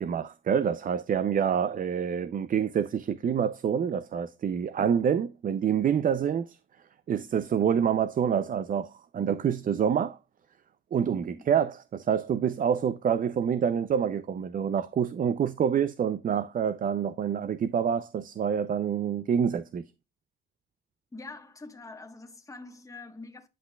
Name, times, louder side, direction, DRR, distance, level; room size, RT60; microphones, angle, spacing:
voice 1, 0.0-6.6 7.1-10.2 10.9-19.8, right 8 dB, 45° right, 0.5 m, -27 dB
voice 2, 21.1-23.5, left 3 dB, 15° left, 1.2 m, -45 dB
10.0 x 5.7 x 2.3 m
cardioid pair, 80°, 20 cm